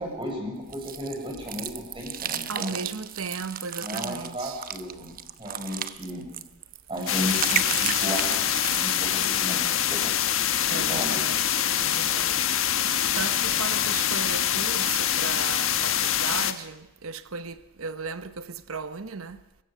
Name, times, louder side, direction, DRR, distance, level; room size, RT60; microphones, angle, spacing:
voice 1, 0.0-2.7 3.8-6.2 6.9-8.2 8.7-10.1 10.6-11.3, equal, 25° right, 7.5 m, -34 dB
sound 1, 0.7-9.4, right 9 dB, 45° right, 0.9 m, -34 dB
voice 2, 2.5-4.6 10.7-12.4 13.1-19.4, right 5 dB, 75° right, 1.0 m, -36 dB
sound 2, 7.1-16.5, left 10 dB, 70° left, 1.4 m, -25 dB
24.0 x 22.0 x 6.9 m
head